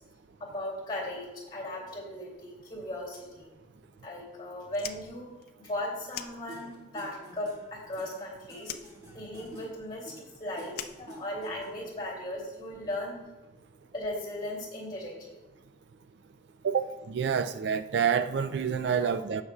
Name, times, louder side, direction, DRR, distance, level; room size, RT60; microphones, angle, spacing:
voice 1, 0.4-3.5 4.0-8.7 9.1-13.2 13.9-15.4, left 1 dB, 20° left, -3 dB, 2.6 m, -37 dB
Fire, 4.7-7.0 7.2-8.2 8.6-11.8, left 10 dB, 50° left, 0.4 m, -43 dB
sound 1, 6.5-12.0, right 1 dB, 20° right, 1.9 m, -49 dB
voice 2, 16.6-19.4, right 7 dB, 55° right, 11 dB, 0.3 m, -28 dB
16.0 x 5.7 x 2.3 m, 1.2 s
head